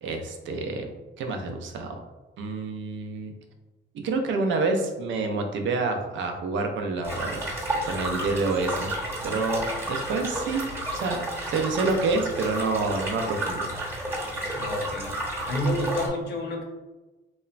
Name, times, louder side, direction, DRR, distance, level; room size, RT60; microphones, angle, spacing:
voice 1, 0.0-2.0 2.4-3.3 4.0-8.9 9.2-11.2 11.5-13.7, right 3 dB, 70° right, 4 dB, 0.5 m, -28 dB
sound 1, 7.0-16.1, right 1 dB, 10° right, 0.9 m, -31 dB
voice 2, 14.5-15.1 15.5-16.6, equal, 55° left, 1 dB, 0.7 m, -29 dB
2.9 x 2.1 x 2.4 m, 1.1 s
cardioid pair, 90°, 20 cm